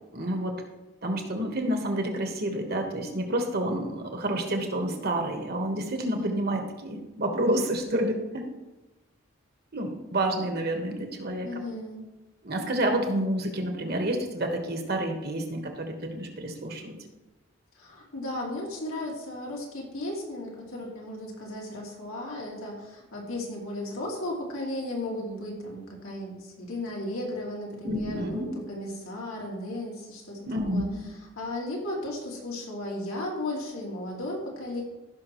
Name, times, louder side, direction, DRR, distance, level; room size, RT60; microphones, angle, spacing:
voice 1, 0.1-0.6 1.0-8.5 9.7-11.6 12.4-17.0 27.8-28.5 30.4-31.0, right 1 dB, 45° right, 3 dB, 1.4 m, -29 dB
voice 2, 6.0-6.4 11.4-12.0 17.8-30.4 30.7-34.8, left 1 dB, 85° left, -2 dB, 2.5 m, -35 dB
15.5 x 6.1 x 3.1 m, 1.1 s
head